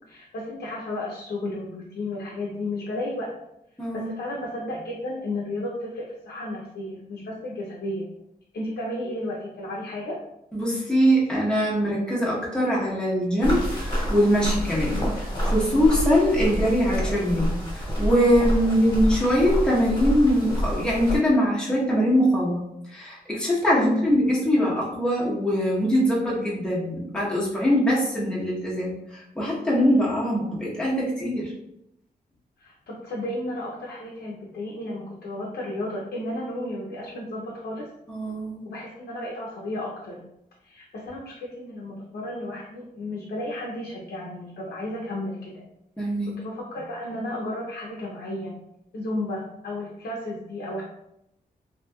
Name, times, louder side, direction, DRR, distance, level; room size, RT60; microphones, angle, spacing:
voice 1, 0.1-3.3 3.9-8.1 8.5-10.2 14.9-15.2 23.7-24.1 32.6-37.9 38.6-40.2 40.6-45.6 46.3-48.6 48.9-50.8, left 1 dB, 90° left, -4 dB, 0.6 m, -33 dB
voice 2, 3.8-4.1 10.5-15.0 15.4-22.6 22.9-31.5 38.1-38.7 46.0-46.3, equal, 5° left, -6 dB, 0.9 m, -22 dB
sound 1, 13.4-21.2, equal, 30° left, 1.2 m, -27 dB
2.8 x 2.7 x 2.3 m, 0.82 s
wide cardioid pair, 95°, 16 cm